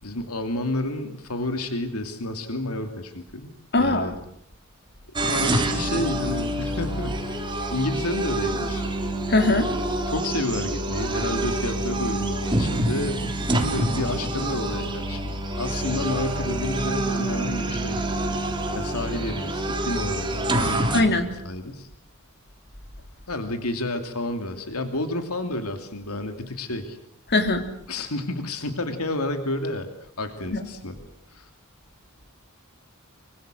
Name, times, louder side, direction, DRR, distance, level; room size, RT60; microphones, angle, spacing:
voice 1, 0.0-3.5 3.8-4.1 5.2-8.9 10.1-18.0 18.7-21.2 21.4-21.9 23.3-27.0 27.9-31.0 31.3-31.5, left 1 dB, 80° left, 7 dB, 2.8 m, -30 dB
voice 2, 3.7-4.1 9.3-9.7 20.9-21.3 27.3-27.6 30.5-30.6, left 2 dB, 50° left, 6 dB, 3.5 m, -20 dB
sound 1, 5.2-21.0, right 1 dB, 20° right, 3.5 m, -27 dB
26.0 x 24.0 x 7.8 m, 0.69 s
head